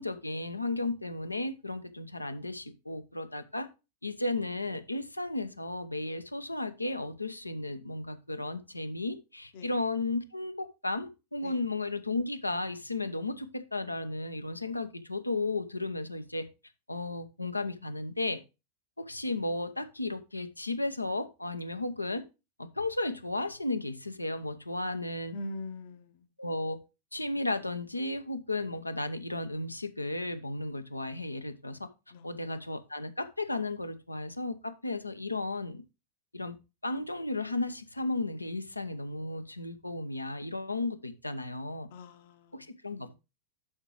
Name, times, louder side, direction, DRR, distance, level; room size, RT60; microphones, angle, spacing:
voice 1, 0.0-3.7 4.0-16.5 16.9-18.4 19.0-22.2 22.6-25.4 26.4-26.8 27.1-31.9 32.2-35.8 36.3-36.6 36.8-41.9 42.5-43.1, left 2 dB, 85° left, 0.9 m, -34 dB
voice 2, 25.3-26.3 32.1-32.4 41.9-42.6 42.9-43.1, left 2 dB, 55° left, 1.0 m, -43 dB
11.0 x 5.8 x 3.1 m
figure-of-eight pair, 90°, 0 cm